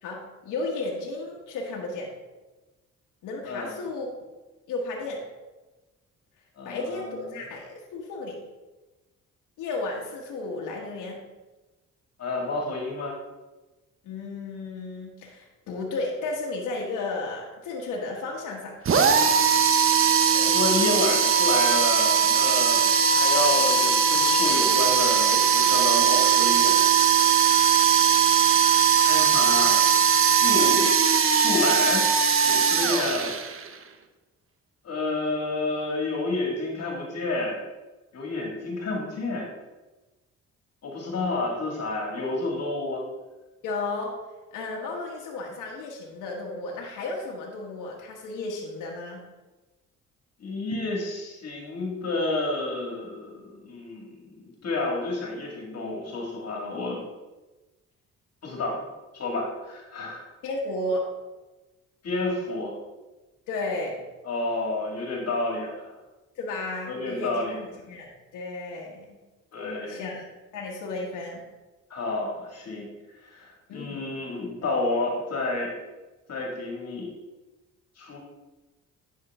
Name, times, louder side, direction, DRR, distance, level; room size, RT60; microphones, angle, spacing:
voice 1, 0.0-2.1 3.2-4.1 4.7-5.2 6.6-8.4 9.6-11.2 14.0-18.8 30.5-30.7 43.6-44.1 44.5-49.2 60.4-61.1 63.5-64.0 66.3-69.2 69.9-70.2 70.5-71.4 73.7-74.0, left 2 dB, 90° left, -1 dB, 1.4 m, -33 dB
voice 2, 3.5-3.8 6.6-7.4 12.2-13.2 20.3-28.2 28.7-32.1 32.4-33.3 34.8-37.6 38.1-39.5 40.8-43.0 50.4-57.0 58.4-58.8 59.1-60.2 62.0-62.7 64.2-66.0 66.9-67.6 69.5-70.1 71.9-75.7 76.3-77.1 78.0-78.2, left 2 dB, 55° left, -1 dB, 2.2 m, -30 dB
sound 1, 18.9-33.7, right 7 dB, 45° right, 0.9 m, -20 dB
9.9 x 6.4 x 3.6 m, 1.2 s
cardioid pair, 90°, 30 cm